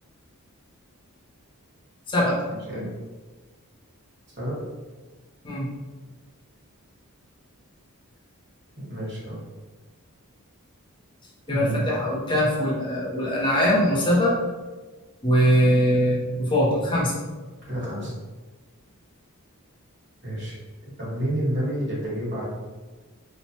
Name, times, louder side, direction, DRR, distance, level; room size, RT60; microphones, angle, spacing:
voice 1, 2.1-2.4 5.4-5.7 11.5-14.4 15.2-17.1, equal, 20° left, -5 dB, 0.6 m, -21 dB
voice 2, 8.8-9.4 11.5-11.8 17.7-18.1 20.2-20.6 21.0-22.4, right 1 dB, 50° right, -7 dB, 1.3 m, -29 dB
3.0 x 2.1 x 2.7 m, 1.3 s
head